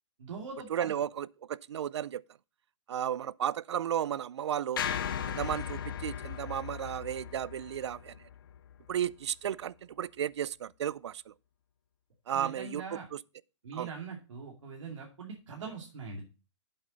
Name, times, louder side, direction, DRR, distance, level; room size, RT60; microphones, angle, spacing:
voice 1, 0.2-0.9 12.3-13.1 13.6-16.3, right 5 dB, 80° right, 2.5 m, -42 dB
voice 2, 0.7-2.2 2.9-4.8 5.3-8.2 8.9-11.3 12.3-13.2 13.7-13.9, right 10 dB, 65° right, 0.4 m, -34 dB
sound 1, 4.8-9.1, left 8 dB, 45° left, 0.9 m, -37 dB
8.3 x 7.7 x 3.9 m
hypercardioid pair, 180°, 16 cm